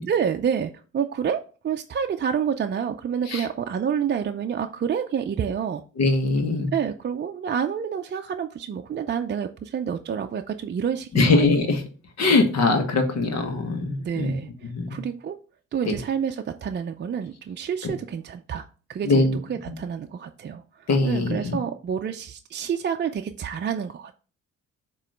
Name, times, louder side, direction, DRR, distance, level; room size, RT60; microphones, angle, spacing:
voice 1, 0.1-5.8 6.7-11.4 14.0-15.4 15.7-18.6 18.9-24.1, right 7 dB, 35° right, 4 dB, 0.5 m, -28 dB
voice 2, 6.0-6.7 11.1-11.9 12.2-14.4 14.6-15.0 15.8-16.0 17.8-17.9 19.0-19.4 19.7-19.8 20.9-21.6, left 3 dB, 60° left, 5 dB, 1.6 m, -22 dB
7.4 x 3.1 x 5.0 m, 0.38 s
cardioid pair, 90°, 30 cm